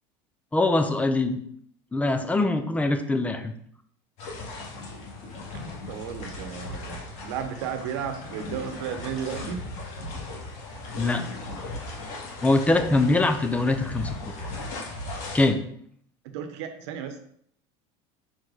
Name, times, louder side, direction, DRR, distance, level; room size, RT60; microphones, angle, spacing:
voice 1, 0.5-1.4 1.9-3.5 11.0-11.2 12.4-14.1 15.3-15.6, left 2 dB, 10° left, 7 dB, 0.7 m, -23 dB
sound 1, 4.2-15.5, left 2 dB, 55° left, 2.3 m, -37 dB
voice 2, 5.9-9.7 16.3-17.2, right 8 dB, 85° right, 7 dB, 1.0 m, -34 dB
6.0 x 4.9 x 4.0 m, 0.65 s
supercardioid pair, 135°, 14 cm